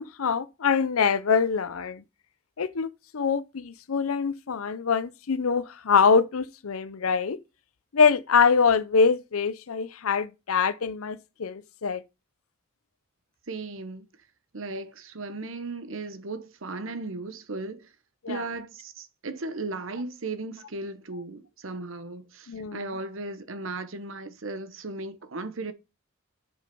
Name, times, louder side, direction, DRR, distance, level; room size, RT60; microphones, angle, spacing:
voice 1, 0.0-2.0 2.6-2.9 3.1-7.4 7.9-12.0 18.2-18.4 22.5-22.8, left 5 dB, 85° left, 0.6 m, -24 dB
voice 2, 13.5-14.1 14.5-17.9 18.3-25.7, right 3 dB, 70° right, 1.0 m, -36 dB
7.5 x 7.2 x 5.4 m
head